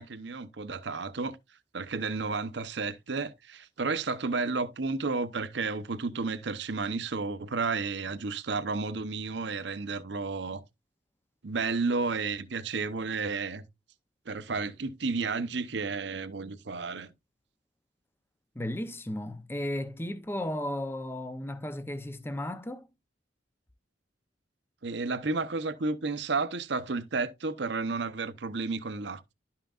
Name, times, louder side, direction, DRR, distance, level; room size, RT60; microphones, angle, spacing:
voice 1, 0.0-1.4 1.7-10.6 11.4-13.6 14.3-17.1 24.8-29.3, right 4 dB, 65° right, 0.7 m, -32 dB
voice 2, 18.5-22.9, left 1 dB, 15° left, 0.5 m, -34 dB
11.5 x 5.7 x 2.4 m
head